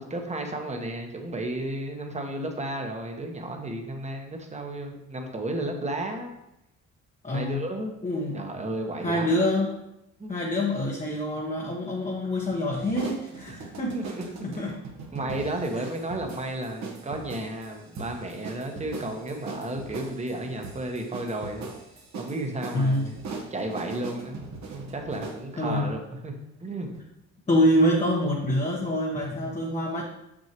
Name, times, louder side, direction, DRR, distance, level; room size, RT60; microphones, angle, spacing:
voice 1, 0.0-6.3 7.3-7.9 8.3-9.4 10.2-10.4 13.9-14.2 14.6-14.7 15.1-21.7 22.2-23.1 23.5-24.4 24.7-26.3 26.6-27.0 29.4-29.5, right 1 dB, 20° right, 3 dB, 1.1 m, -33 dB
voice 2, 7.2-7.6 8.0-8.5 9.0-9.8 10.3-14.1 14.4-14.8 22.7-23.1 25.6-25.9 27.5-30.0, left 1 dB, 25° left, -2 dB, 1.0 m, -26 dB
sound 1, 12.7-25.4, right 4 dB, 65° right, 1.2 m, -40 dB
6.3 x 6.2 x 2.9 m, 0.86 s
cardioid pair, 90°, 30 cm